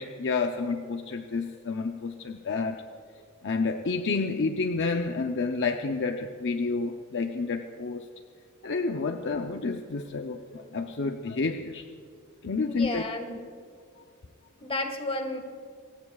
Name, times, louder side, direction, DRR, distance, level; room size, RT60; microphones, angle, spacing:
voice 1, 0.0-2.8 3.4-8.0 8.6-11.9 12.4-13.0, left 4 dB, 55° left, 5 dB, 0.6 m, -29 dB
voice 2, 12.7-13.4 14.6-15.4, left 2 dB, 25° left, 5 dB, 1.6 m, -32 dB
28.5 x 16.0 x 2.4 m, 2.2 s
head